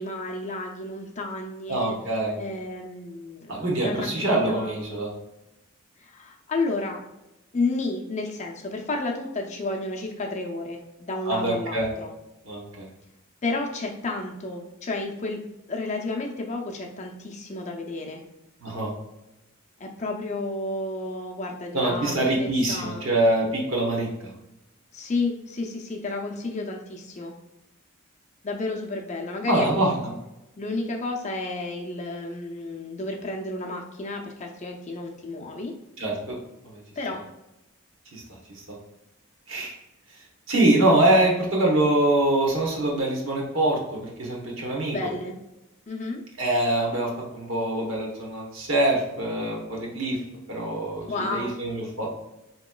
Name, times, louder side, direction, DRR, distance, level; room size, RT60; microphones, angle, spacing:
voice 1, 0.0-2.0 2.4-4.8 6.0-7.0 7.5-12.1 13.4-15.4 15.7-18.2 19.8-23.1 24.9-27.3 28.4-29.9 30.6-35.7 37.0-37.2 44.9-45.4 45.9-46.2 51.1-51.6, left 2 dB, 35° left, 1 dB, 0.5 m, -31 dB
voice 2, 1.7-2.3 3.5-5.1 11.3-11.9 12.5-12.9 18.6-18.9 21.7-24.3 29.5-29.9 36.0-36.4 36.6-36.8 38.1-38.6 39.5-39.7 40.5-45.0 46.4-50.2 50.5-52.1, right 1 dB, 65° right, -2 dB, 1.1 m, -24 dB
4.6 x 2.9 x 2.3 m, 0.94 s
head